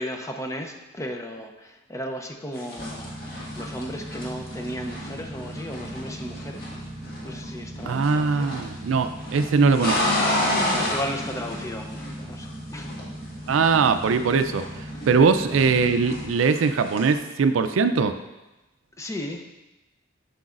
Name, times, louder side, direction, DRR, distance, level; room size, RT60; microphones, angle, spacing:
voice 1, 0.0-3.1 3.6-6.6 7.2-8.8 10.9-12.9 15.2-15.3 19.0-19.4, equal, 15° left, 4 dB, 0.6 m, -35 dB
sound 1, 2.5-7.5 7.7-8.7 9.0-12.5 12.8-15.2 15.4-17.1, left 1 dB, 50° left, 1.8 m, -30 dB
sound 2, 2.8-16.3, right 1 dB, 30° right, 1.1 m, -38 dB
voice 2, 7.9-10.1 13.5-14.6 15.1-18.2, right 5 dB, 80° right, 10 dB, 0.4 m, -21 dB
7.8 x 6.8 x 2.5 m, 1.0 s
head